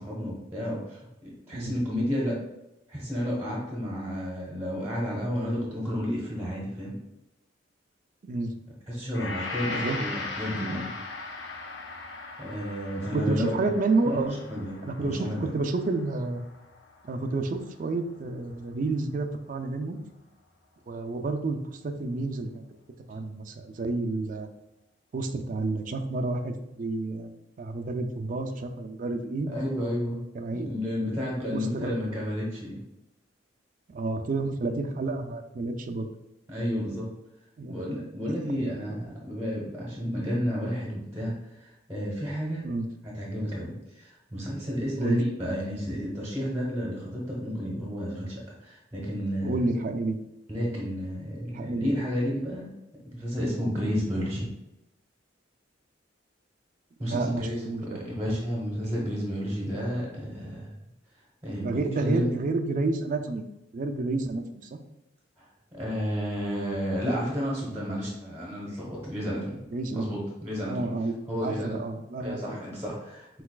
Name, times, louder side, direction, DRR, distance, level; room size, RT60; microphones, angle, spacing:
voice 1, 0.0-2.4 2.9-7.0 8.9-10.9 12.4-13.7 14.0-14.2 14.5-15.5 29.5-30.2 30.5-32.8 34.7-34.8 36.5-37.1 37.7-42.7 43.0-49.7 50.5-52.7 53.1-54.5 57.0-60.7 61.4-62.3 65.4-65.5 65.7-69.6 69.9-70.9 71.3-71.8 72.2-73.4, equal, 15° right, -4 dB, 1.0 m, -31 dB
Gong, 9.1-17.6 17.9-18.1, left 3 dB, 70° left, 0.6 m, -39 dB
voice 2, 13.0-14.4 14.8-16.4 17.1-20.0 20.9-21.6 21.8-22.7 23.1-24.5 25.1-27.3 27.6-29.5 30.3-30.7 31.5-31.9 33.9-36.1 37.6-37.8 38.3-38.7 42.6-42.9 45.0-45.2 49.4-50.2 51.5-51.9 57.0-58.0 61.6-63.4 63.7-64.8 69.7-70.1 70.7-72.6, right 3 dB, 45° right, 7 dB, 0.4 m, -30 dB
4.5 x 4.0 x 2.3 m, 0.90 s
head